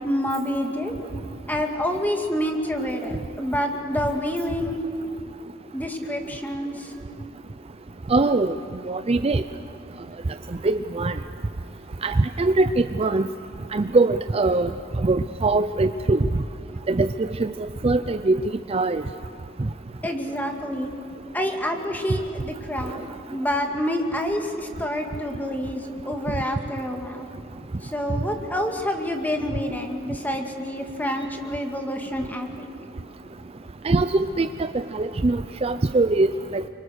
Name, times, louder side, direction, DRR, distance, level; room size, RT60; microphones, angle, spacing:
voice 1, 0.0-0.9 1.5-4.8 5.7-6.9 20.0-20.9 21.3-23.0 23.3-27.3 27.8-32.7, equal, 10° left, 3 dB, 2.1 m, -27 dB
voice 2, 8.1-8.5 8.9-9.4 10.6-11.2 12.0-13.3 13.7-14.7 15.0-16.3 16.9-17.5 17.8-18.4 18.7-19.0 33.8-36.6, right 3 dB, 30° right, 10 dB, 0.5 m, -22 dB
28.5 x 24.5 x 6.4 m, 2.6 s
head